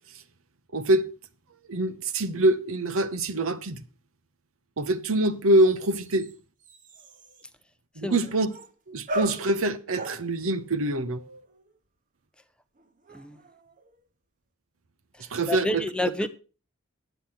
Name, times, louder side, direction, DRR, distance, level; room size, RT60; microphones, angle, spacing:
voice 1, 0.7-1.1 1.7-3.8 4.8-6.3 8.0-8.5 8.9-11.2 15.3-15.8, right 1 dB, 70° right, 0.9 m, -24 dB
sound 1, 3.4-3.5 5.5-7.5 8.2-8.8 9.1-11.8 12.7-14.1, right 1 dB, 35° right, 1.0 m, -40 dB
voice 2, 15.2-16.3, left 1 dB, 5° left, 0.6 m, -29 dB
10.5 x 8.1 x 5.7 m
head